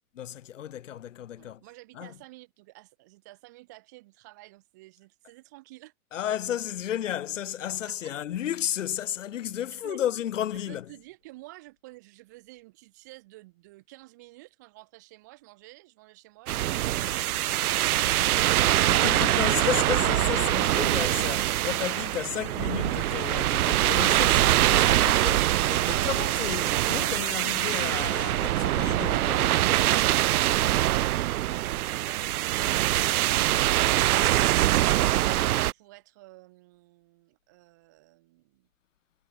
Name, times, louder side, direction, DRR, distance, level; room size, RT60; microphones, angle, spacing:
voice 1, 0.1-1.6 1.9-2.2 6.1-11.0 18.8-30.1, left 11 dB, 55° left, 0.9 m, -33 dB
voice 2, 1.4-5.9 7.9-8.1 9.8-10.0 10.5-18.2 26.1-26.3 35.7-38.7, right 21 dB, 15° right, 0.8 m, -51 dB
sound 1, 16.5-35.7, right 14 dB, 85° right, 0.5 m, -24 dB
hypercardioid pair, 175°, 43 cm